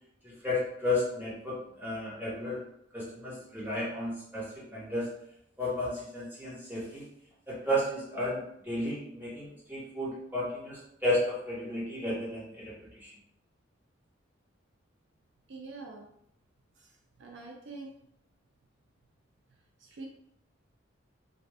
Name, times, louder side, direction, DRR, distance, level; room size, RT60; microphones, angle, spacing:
voice 1, 0.2-2.6 2.9-5.1 5.6-7.0 7.5-13.1, left 1 dB, 10° right, -9 dB, 1.2 m, -33 dB
voice 2, 15.5-16.1 16.8-17.9 19.8-20.1, right 3 dB, 65° right, 1 dB, 0.4 m, -45 dB
2.4 x 2.4 x 3.3 m, 0.73 s
head